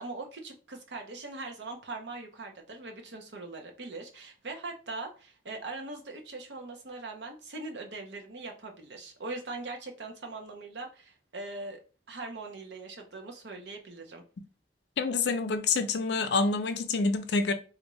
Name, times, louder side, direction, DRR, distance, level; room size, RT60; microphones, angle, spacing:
voice 1, 0.0-11.8 12.1-14.2, right 3 dB, 70° right, 0.7 m, -41 dB
voice 2, 15.0-17.5, left 4 dB, 65° left, 0.5 m, -27 dB
3.5 x 2.5 x 3.0 m
head